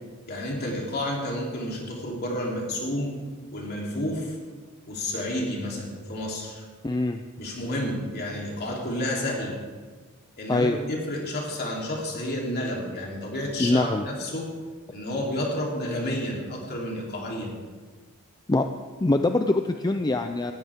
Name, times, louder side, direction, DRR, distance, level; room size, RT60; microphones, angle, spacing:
voice 1, 0.3-3.2 3.5-4.4 4.9-6.6 7.4-9.6 10.4-14.5 14.9-17.6, left 1 dB, 45° left, -2 dB, 3.3 m, -30 dB
voice 2, 6.8-7.2 10.5-10.8 13.6-14.0 18.5-18.7 19.0-20.5, left 2 dB, 20° left, 7 dB, 0.5 m, -23 dB
18.5 x 14.0 x 3.6 m, 1.5 s
head